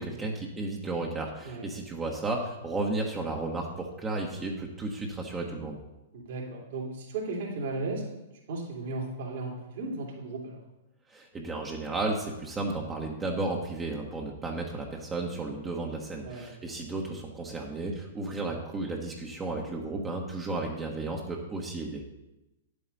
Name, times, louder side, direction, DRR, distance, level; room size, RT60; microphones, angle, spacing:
voice 1, 0.0-5.8 11.1-22.0, right 2 dB, 15° right, -1 dB, 1.2 m, -33 dB
voice 2, 6.1-8.1 8.5-10.6 16.2-16.5, right 2 dB, 65° right, -3 dB, 2.9 m, -35 dB
9.9 x 7.9 x 4.1 m, 0.96 s
hypercardioid pair, 125°, 0 cm